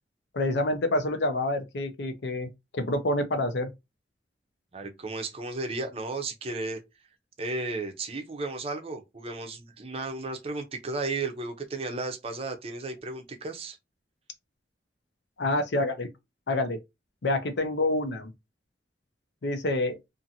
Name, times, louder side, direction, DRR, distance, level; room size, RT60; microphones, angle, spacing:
voice 1, 0.3-3.7 15.4-16.1 16.5-16.8 17.2-18.3 19.4-20.0, left 1 dB, 70° left, 0.6 m, -27 dB
voice 2, 4.7-6.8 7.4-13.8, right 3 dB, 35° right, 0.5 m, -34 dB
2.6 x 2.5 x 2.7 m
head